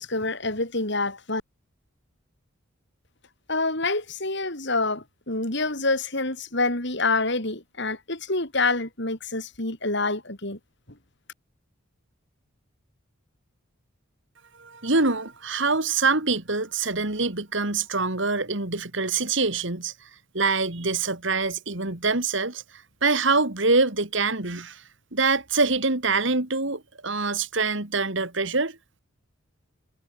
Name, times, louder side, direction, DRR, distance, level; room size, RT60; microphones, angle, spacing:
voice 1, 0.0-1.4 3.5-10.6, left 3 dB, 55° left, 4.9 m, -27 dB
voice 2, 14.6-19.9 20.3-22.6 23.0-24.8 25.1-28.8, right 3 dB, 60° right, 2.6 m, -25 dB
head